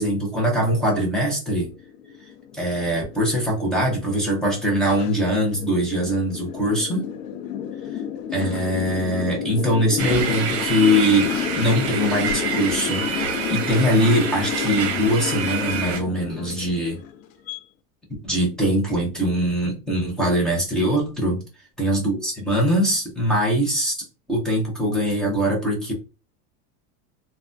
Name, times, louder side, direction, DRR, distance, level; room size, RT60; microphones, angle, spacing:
voice 1, 0.0-1.7 2.5-7.1 8.3-13.0 13.5-17.0 18.2-21.4 21.8-23.9 24.3-25.9, equal, ahead, -3 dB, 0.3 m, -22 dB
sound 1, 1.4-17.6, left 8 dB, 80° left, 0.5 m, -30 dB
sound 2, 10.0-16.0, right 6 dB, 55° right, 0.7 m, -28 dB
3.2 x 2.1 x 2.5 m, 0.31 s
supercardioid pair, 150°, 40 cm